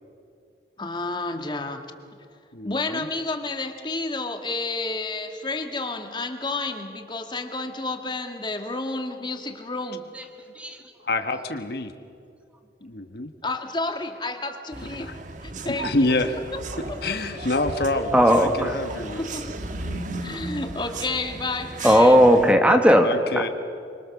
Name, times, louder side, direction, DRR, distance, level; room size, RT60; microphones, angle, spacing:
voice 1, 0.8-1.9 2.6-10.1 13.4-15.2 15.4-16.1 16.5-16.6 18.0-18.1 19.2-19.5 20.2-22.3, left 3 dB, 25° left, 6 dB, 1.8 m, -30 dB
voice 2, 2.5-3.1 10.4-10.5 11.0-11.9 12.8-13.3 15.0-15.1 15.7-16.4 16.8-19.2 23.0-23.5, left 2 dB, 60° left, 8 dB, 1.3 m, -27 dB
sound 1, 14.7-22.5, right 2 dB, 45° right, 1.5 m, -35 dB
voice 3, 18.1-18.7 21.8-23.1, equal, 5° right, 5 dB, 1.6 m, -16 dB
26.0 x 24.5 x 7.1 m, 2.5 s
head